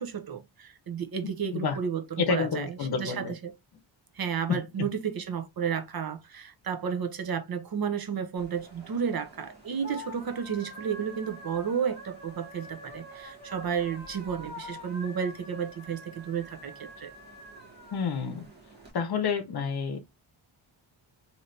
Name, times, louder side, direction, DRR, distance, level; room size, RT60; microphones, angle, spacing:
voice 1, 0.0-3.5 4.1-17.1, right 7 dB, 50° right, 0.7 m, -32 dB
voice 2, 2.2-3.3 4.8-4.9 17.9-18.4 18.9-20.0, left 5 dB, 50° left, 0.8 m, -29 dB
sound 1, 8.4-18.9, equal, 20° right, 1.4 m, -46 dB
3.2 x 2.8 x 2.7 m
wide cardioid pair, 115°, 48 cm